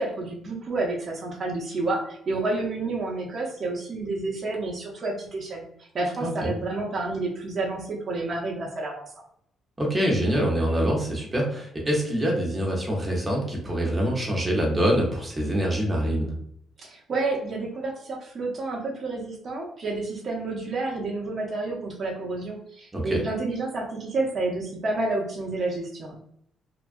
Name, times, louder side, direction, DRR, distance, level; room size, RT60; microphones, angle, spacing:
voice 1, 0.0-9.1 16.8-26.2, right 2 dB, 45° right, -3 dB, 0.7 m, -30 dB
voice 2, 6.2-6.5 9.8-16.3 22.9-23.2, equal, 20° right, -2 dB, 1.0 m, -25 dB
2.9 x 2.3 x 2.6 m, 0.69 s
cardioid pair, 90°, 0 cm